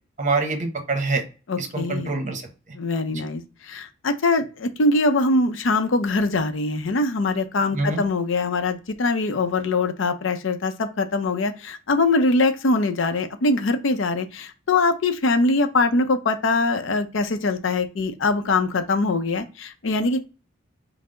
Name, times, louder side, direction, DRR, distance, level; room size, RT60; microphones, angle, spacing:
voice 1, 0.2-1.2 1.6-2.4 3.1-3.2 7.7-8.0, right 3 dB, 40° right, 5 dB, 0.8 m, -25 dB
voice 2, 1.5-2.1 2.7-20.2, left 3 dB, 70° left, 7 dB, 0.6 m, -22 dB
5.5 x 2.0 x 3.7 m, 0.33 s
head